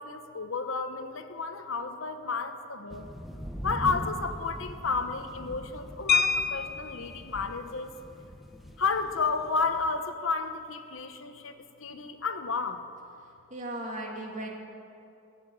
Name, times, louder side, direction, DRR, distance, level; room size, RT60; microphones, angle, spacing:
voice 1, 0.0-3.1 3.6-7.9 8.8-12.8, left 4 dB, 75° left, 8 dB, 1.0 m, -32 dB
sound 1, 2.9-10.0, equal, ahead, 0.9 m, -42 dB
sound 2, 6.1-7.2 8.6-8.7 9.1-9.3 9.6-9.9, left 6 dB, 45° left, 0.7 m, -27 dB
voice 2, 13.5-14.5, right 1 dB, 35° right, 0 dB, 2.5 m, -36 dB
18.5 x 7.6 x 10.0 m, 2.6 s
head